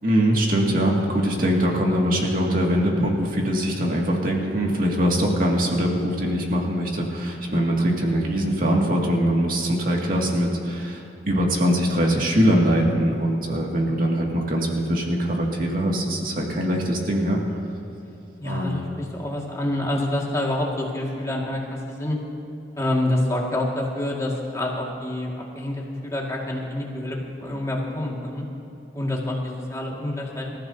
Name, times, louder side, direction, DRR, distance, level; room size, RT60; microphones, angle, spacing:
voice 1, 0.0-17.6 18.4-18.8, equal, 50° right, -1 dB, 2.3 m, -22 dB
voice 2, 18.4-22.2 22.8-28.5 28.9-30.6, left 1 dB, 15° left, -2 dB, 2.1 m, -27 dB
27.0 x 14.0 x 2.8 m, 2.8 s
head